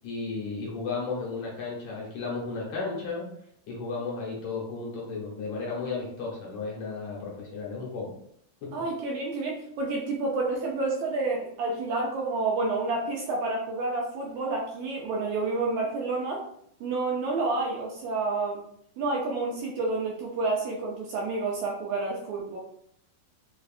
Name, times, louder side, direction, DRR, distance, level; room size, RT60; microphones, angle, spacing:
voice 1, 0.0-3.2 3.7-8.1 8.6-8.7, left 4 dB, 70° left, -4 dB, 2.0 m, -34 dB
voice 2, 8.7-16.4 16.8-18.6 19.0-22.6, right 3 dB, 75° right, -1 dB, 1.8 m, -29 dB
5.2 x 2.3 x 2.4 m, 0.68 s
omnidirectional pair, 3.6 m